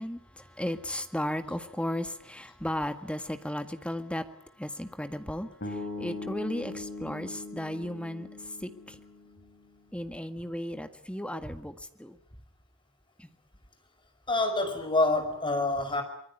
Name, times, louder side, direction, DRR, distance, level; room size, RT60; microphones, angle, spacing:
voice 1, 0.0-4.3 4.6-9.0 9.9-12.2 13.2-13.3, left 1 dB, 5° left, 8 dB, 1.7 m, -35 dB
sound 1, 5.6-9.8, left 2 dB, 50° left, 5.9 m, -40 dB
voice 2, 14.3-16.0, left 2 dB, 25° left, 7 dB, 5.2 m, -26 dB
24.5 x 22.0 x 9.3 m, 0.67 s
head